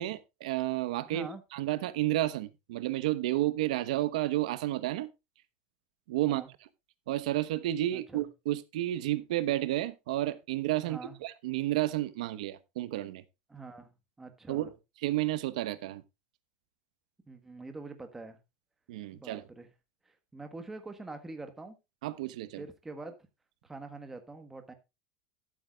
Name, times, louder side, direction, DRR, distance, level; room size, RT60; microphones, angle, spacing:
voice 1, 0.0-5.1 6.1-6.4 7.1-13.2 14.5-14.7 15.0-16.0 18.9-19.4 22.0-22.6, right 15 dB, 85° right, 1.0 m, -31 dB
voice 2, 1.0-1.4 6.3-6.5 7.9-8.3 10.8-11.2 13.5-13.9 14.2-14.7 17.3-18.4 19.1-19.7 20.0-21.8 22.6-23.2 23.6-24.7, right 3 dB, 10° right, 1.4 m, -45 dB
12.5 x 12.5 x 2.4 m
supercardioid pair, 170°, 4 cm